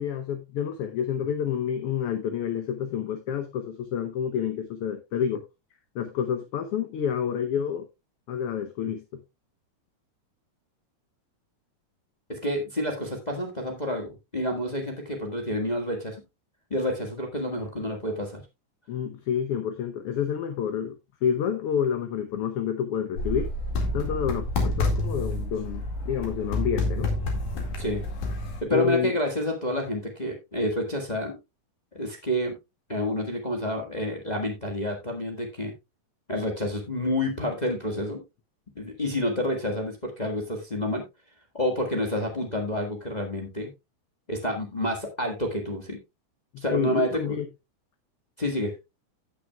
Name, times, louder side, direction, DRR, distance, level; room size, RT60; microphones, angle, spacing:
voice 1, 0.0-5.4 5.9-7.9 8.3-9.2 18.9-23.5 23.9-27.1 28.7-29.1 46.5-47.5, left 8 dB, 65° left, 1.5 m, -29 dB
voice 2, 12.3-16.2 16.7-18.4 27.8-28.0 28.6-31.4 31.9-32.6 32.9-35.7 36.3-38.2 38.7-41.0 41.5-43.7 44.3-46.0 46.6-47.4 48.4-48.7, left 1 dB, 25° left, 0.9 m, -29 dB
sound 1, 23.2-28.6, left 2 dB, 80° left, 3.6 m, -28 dB
16.5 x 6.1 x 2.3 m
omnidirectional pair, 3.5 m